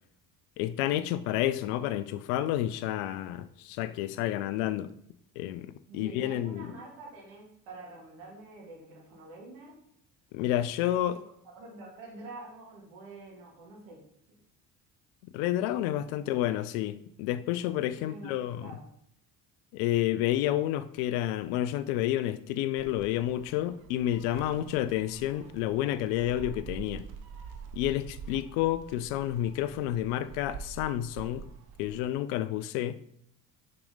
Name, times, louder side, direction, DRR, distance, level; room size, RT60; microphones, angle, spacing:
voice 1, 0.6-4.9 5.4-6.7 10.3-11.2 15.3-18.7 19.7-27.0 27.7-31.5 31.8-33.0, left 13 dB, 65° left, 0.6 m, -30 dB
voice 2, 5.9-9.8 11.1-11.2 11.6-14.0 16.2-16.3 18.0-18.9, right 2 dB, 70° right, 2.5 m, -47 dB
Gull seagull, 22.8-32.1, right 6 dB, 50° right, 0.9 m, -46 dB
5.8 x 4.8 x 3.9 m
hypercardioid pair, 60°, 49 cm